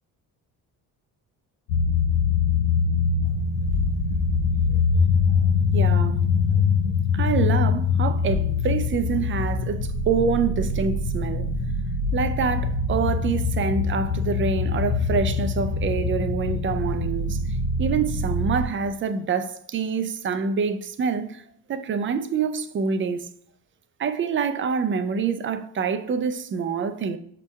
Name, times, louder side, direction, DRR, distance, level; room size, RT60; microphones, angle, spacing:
sound 1, 1.7-18.7, left 5 dB, 80° left, 0.5 m, -23 dB
voice 1, 5.7-6.2 7.1-11.5 12.1-17.4 17.8-21.4 21.7-23.3 24.0-27.2, right 5 dB, 30° right, 0.4 m, -26 dB
5.8 x 2.8 x 2.3 m
hypercardioid pair, 55°, 45 cm